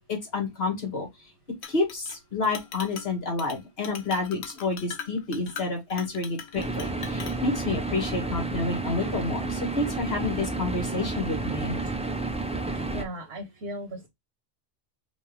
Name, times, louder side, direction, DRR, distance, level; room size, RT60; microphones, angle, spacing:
voice 1, 0.1-1.1 1.7-11.8, left 3 dB, 70° left, 2.1 m, -29 dB
Chink clink, 1.6-2.2 2.4-3.1 3.4-3.6 3.8-7.4, left 7 dB, 85° left, 1.0 m, -40 dB
sound 1, 6.6-13.0, right 3 dB, 10° right, 0.4 m, -31 dB
voice 2, 12.9-14.1, right 1 dB, 80° right, 1.3 m, -37 dB
5.2 x 2.6 x 3.3 m
omnidirectional pair, 1.1 m